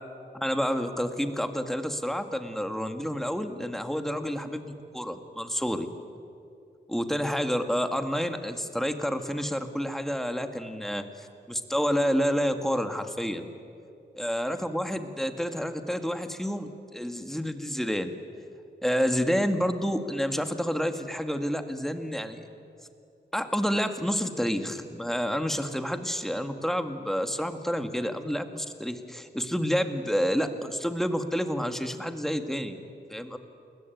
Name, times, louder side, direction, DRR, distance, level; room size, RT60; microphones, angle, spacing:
voice 1, 0.3-5.9 6.9-13.5 14.2-18.1 18.8-22.4 23.3-32.8 33.1-33.4, equal, ahead, 7 dB, 1.9 m, -29 dB
29.5 x 21.5 x 9.3 m, 2.6 s
wide cardioid pair, 125°, 19 cm